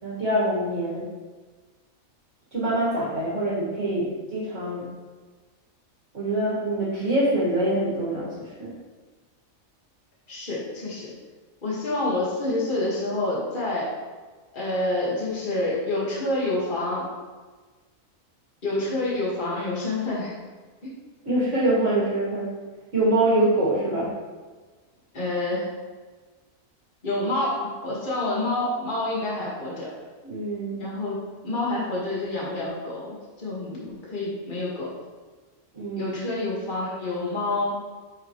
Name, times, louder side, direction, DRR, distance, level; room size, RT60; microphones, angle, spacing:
voice 1, 0.0-1.0 2.5-4.8 6.1-8.7 21.2-22.5 22.9-24.1 30.2-30.8 35.7-36.2, right 1 dB, 60° right, -8 dB, 2.4 m, -24 dB
voice 2, 10.3-11.1 11.6-13.9 14.5-17.1 18.6-20.3 20.8-20.9 25.1-25.7 27.0-29.9 30.7-34.9 36.0-37.8, left 2 dB, 35° left, -6 dB, 1.9 m, -28 dB
9.0 x 6.0 x 3.1 m, 1.4 s
omnidirectional pair, 1.4 m